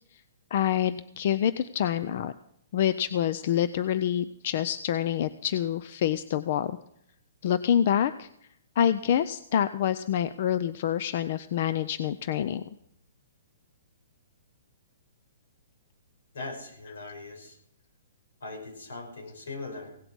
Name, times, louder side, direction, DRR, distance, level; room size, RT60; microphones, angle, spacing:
voice 1, 0.5-2.3 2.7-6.8 7.4-8.3 8.8-12.6, left 10 dB, 40° left, 13 dB, 0.4 m, -26 dB
voice 2, 16.3-17.6 18.4-20.0, left 3 dB, 80° left, 2 dB, 5.5 m, -40 dB
17.0 x 8.0 x 6.2 m, 0.72 s
hypercardioid pair, 175°, 0 cm